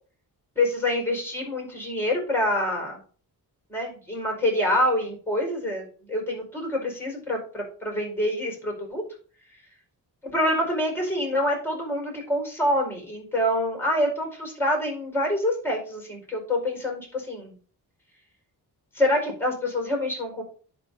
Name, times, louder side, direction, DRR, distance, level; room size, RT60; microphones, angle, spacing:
voice 1, 0.5-3.0 3.7-9.0 10.2-17.5 18.9-20.4, left 1 dB, 5° left, 1 dB, 4.8 m, -26 dB
10.5 x 4.4 x 5.4 m, 0.41 s
wide cardioid pair, 125°, 40 cm